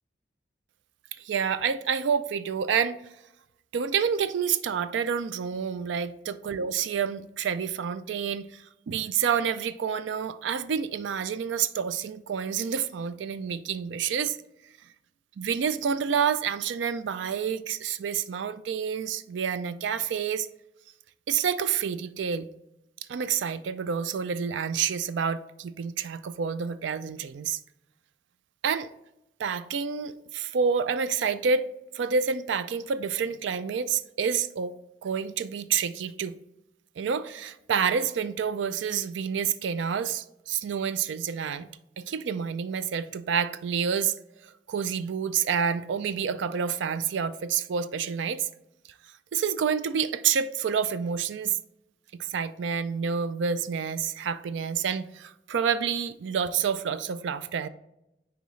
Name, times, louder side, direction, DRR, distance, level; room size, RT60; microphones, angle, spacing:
voice 1, 1.2-3.0 3.7-14.4 15.4-20.5 21.3-22.5 23.1-27.6 28.6-28.9 29.4-31.7 31.9-34.7 35.0-36.4 37.0-41.7 42.0-44.1 44.4-48.5 49.3-51.6 52.1-57.7, right 7 dB, 80° right, 0.4 m, -28 dB
9.1 x 4.7 x 3.1 m
head